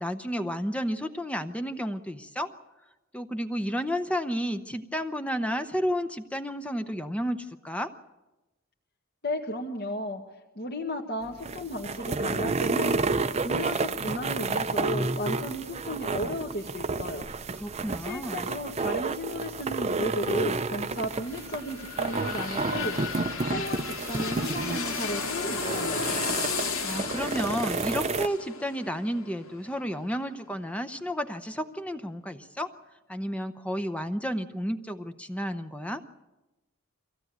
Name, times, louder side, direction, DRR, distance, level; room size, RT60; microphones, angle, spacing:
voice 1, 0.0-2.5 3.1-7.9 17.5-18.5 26.5-32.7 33.1-36.0, equal, 5° left, 8 dB, 0.7 m, -32 dB
voice 2, 9.2-10.2 10.5-13.1 13.4-17.3 18.0-26.0, equal, 50° left, -1 dB, 1.7 m, -34 dB
sound 1, 11.2-28.3, right 3 dB, 30° right, 0.7 m, -31 dB
sound 2, 20.9-30.5 30.9-31.0, left 5 dB, 75° left, 2.6 m, -34 dB
23.5 x 16.0 x 9.1 m, 1.0 s
head